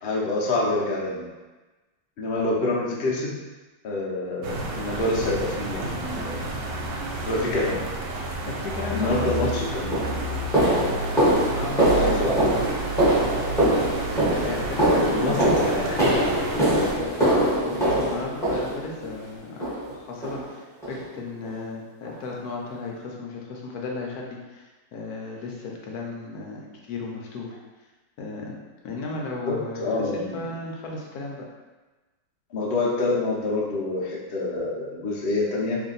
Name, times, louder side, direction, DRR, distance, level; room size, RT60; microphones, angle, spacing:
voice 1, 0.0-1.3 2.2-3.3 3.8-6.4 7.2-7.8 8.9-9.9 12.0-12.3 15.1-15.7 29.5-30.3 32.5-35.8, left 2 dB, 85° left, -4 dB, 0.5 m, -26 dB
sound 1, 4.4-16.9, right 2 dB, 75° right, 1.1 m, -31 dB
voice 2, 8.5-9.6 11.6-12.2 14.4-19.6 19.9-27.6 28.2-28.6 28.8-31.5, left 3 dB, 70° left, -1 dB, 0.9 m, -35 dB
sound 2, 9.2-9.4 9.9-19.1 19.6-20.0 20.2-20.4 20.8-21.0 21.4-21.5 22.0-22.1, right 1 dB, ahead, 0.8 m, -23 dB
3.2 x 2.6 x 3.8 m, 1.2 s
omnidirectional pair, 2.0 m